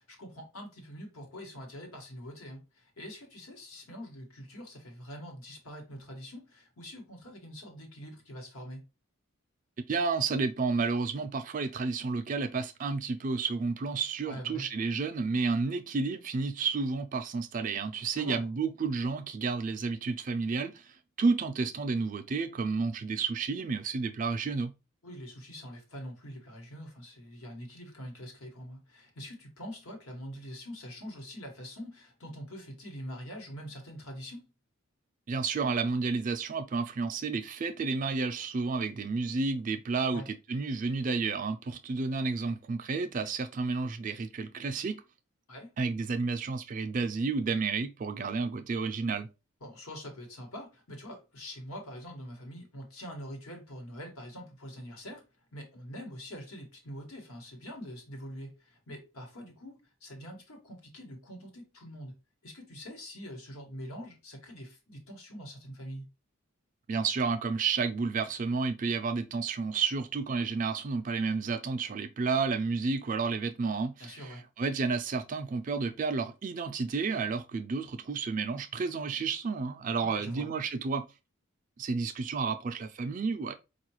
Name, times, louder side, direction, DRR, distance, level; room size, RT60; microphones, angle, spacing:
voice 1, 0.0-8.8 14.3-14.7 18.2-18.5 25.0-34.4 40.1-40.3 45.5-45.7 49.6-55.2 55.5-62.1 62.4-66.0 74.0-74.4 80.0-80.5, equal, 80° left, 1.2 m, -44 dB
voice 2, 9.9-24.7 35.3-40.2 40.5-45.0 45.8-49.3 66.9-81.0 81.8-83.5, right 4 dB, 35° right, 0.3 m, -31 dB
4.6 x 2.4 x 3.0 m
head